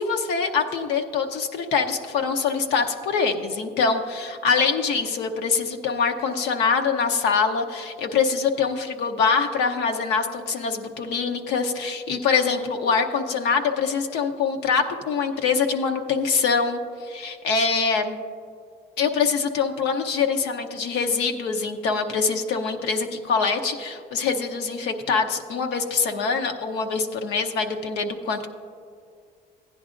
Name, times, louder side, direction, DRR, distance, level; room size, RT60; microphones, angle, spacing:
voice 1, 0.0-18.2 19.0-28.5, left 5 dB, 90° left, 5 dB, 0.8 m, -24 dB
15.5 x 10.0 x 2.5 m, 2.2 s
cardioid pair, 110°, 17 cm